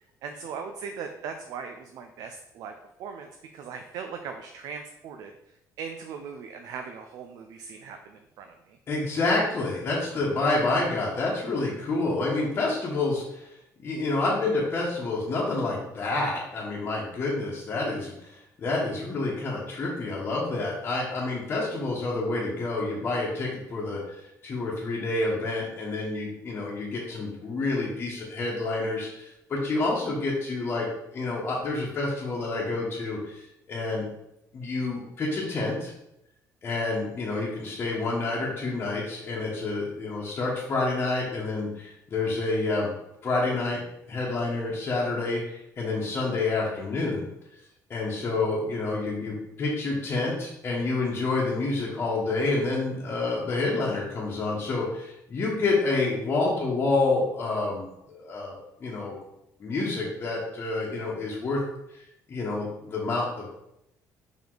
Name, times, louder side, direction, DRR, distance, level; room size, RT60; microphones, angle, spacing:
voice 1, 0.2-2.7 3.0-5.3 5.8-8.8, right 6 dB, 70° right, 5 dB, 0.5 m, -39 dB
voice 2, 8.9-13.5 13.8-18.3 18.6-34.0 34.5-35.9 36.6-42.9 43.2-43.8 44.1-47.3 47.9-58.5 58.8-59.1 59.6-61.6 61.9-62.0 62.3-63.5, left 3 dB, 30° left, -6 dB, 1.2 m, -28 dB
5.2 x 4.9 x 3.9 m, 0.83 s
cardioid pair, 160°, 7 cm